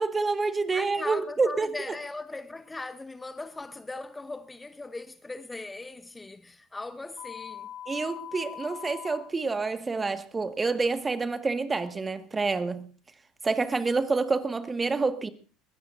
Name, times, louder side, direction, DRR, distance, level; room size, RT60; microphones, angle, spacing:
voice 1, 0.0-1.7 7.9-12.9 13.4-15.3, right 4 dB, 20° right, 1.7 m, -28 dB
voice 2, 0.7-7.7, left 2 dB, 15° left, 0.8 m, -39 dB
sound 1, 7.2-9.2, left 10 dB, 55° left, 1.8 m, -41 dB
22.0 x 17.0 x 2.6 m
hypercardioid pair, 70°, 0 cm